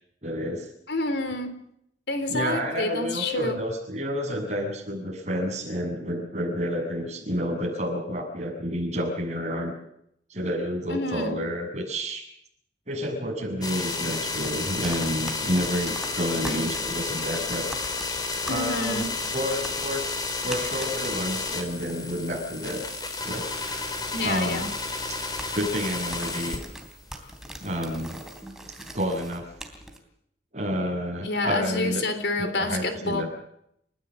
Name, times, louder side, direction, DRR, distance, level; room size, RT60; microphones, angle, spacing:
voice 1, 0.2-0.7 2.3-9.7 10.3-12.3 12.9-17.7 18.4-19.0 19.3-22.8 23.2-23.9 24.2-24.7 25.1-25.2 25.5-26.6 27.6-28.2 28.9-29.5 30.5-32.0 32.4-33.3, equal, 40° right, 2 dB, 7.0 m, -30 dB
voice 2, 0.9-1.5 2.1-3.6 10.9-11.4 16.3-16.7 18.5-19.1 24.1-24.7 31.2-33.3, left 2 dB, 70° left, 9 dB, 3.7 m, -28 dB
sound 1, 13.6-27.0 27.4-28.4, left 3 dB, 25° left, 3.4 m, -32 dB
sound 2, 14.3-30.0, right 1 dB, 5° right, 3.1 m, -43 dB
29.5 x 15.0 x 7.5 m, 0.74 s
head